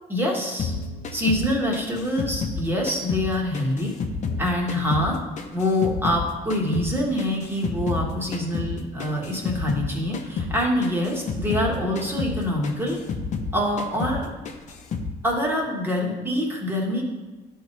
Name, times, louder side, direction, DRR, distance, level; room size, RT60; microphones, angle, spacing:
voice 1, 0.1-0.7 1.1-3.9 4.4-5.2 5.5-13.0 13.5-14.3 15.2-17.0, left 1 dB, 15° right, -1 dB, 1.7 m, -25 dB
sound 1, 0.6-3.3 3.5-6.2 6.5-9.9 10.1-10.6 10.8-13.5 13.8-14.2 14.5-15.1, left 4 dB, 45° left, 0.9 m, -30 dB
11.0 x 3.7 x 4.1 m, 1.3 s
cardioid pair, 110°, 17 cm